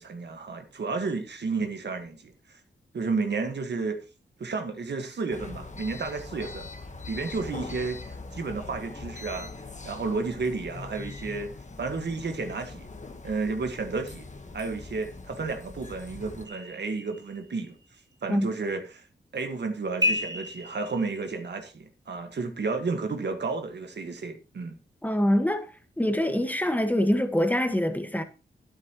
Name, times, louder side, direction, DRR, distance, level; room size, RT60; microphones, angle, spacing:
voice 1, 0.0-2.6 2.9-4.0 4.4-6.7 7.1-8.0 8.3-9.5 9.8-11.5 11.8-12.9 13.2-14.3 14.5-17.8 18.2-19.1 19.3-24.8, right 4 dB, 70° right, 1.7 m, -32 dB
sound 1, 5.3-16.5, left 3 dB, 40° left, 1.4 m, -42 dB
sound 2, 16.5-17.7 20.0-21.5, left 1 dB, 20° right, 1.7 m, -31 dB
voice 2, 25.0-25.7 26.0-28.2, equal, 10° left, 1.6 m, -24 dB
11.5 x 9.7 x 3.1 m
cardioid pair, 65°, 19 cm